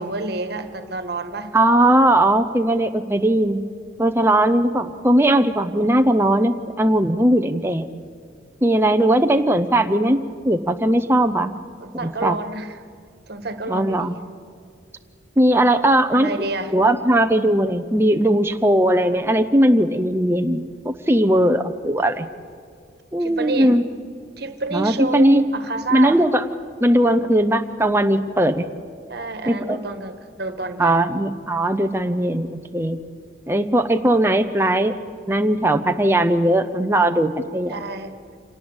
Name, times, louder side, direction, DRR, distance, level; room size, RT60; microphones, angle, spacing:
voice 1, 0.0-1.6 11.8-12.8 13.3-14.1 16.1-16.8 23.2-23.8 24.4-26.2 29.1-31.1 37.7-38.2, right 3 dB, 55° right, 9 dB, 1.5 m, -29 dB
voice 2, 1.5-3.6 4.0-7.9 8.6-11.5 12.0-12.4 13.7-14.1 15.4-16.3 16.7-22.3 23.1-23.9 24.7-25.4 25.9-26.4 26.8-28.7 29.5-29.8 30.8-33.0 33.5-35.0 35.3-37.8, right 1 dB, 10° right, 6 dB, 0.7 m, -18 dB
26.0 x 18.5 x 8.1 m, 2.2 s
head